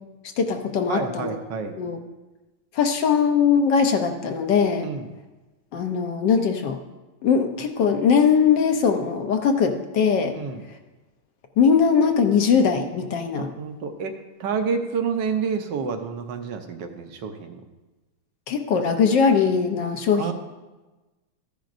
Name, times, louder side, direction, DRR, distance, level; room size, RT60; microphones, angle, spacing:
voice 1, 0.4-1.3 1.8-2.0 2.7-4.9 5.7-6.8 7.2-10.4 11.6-13.5 18.5-20.3, left 6 dB, 65° left, 5 dB, 1.3 m, -20 dB
voice 2, 0.9-1.8 4.8-5.1 10.3-10.6 13.3-17.6 20.1-20.3, right 6 dB, 65° right, 6 dB, 1.2 m, -29 dB
14.0 x 10.5 x 2.6 m, 1.1 s
omnidirectional pair, 2.4 m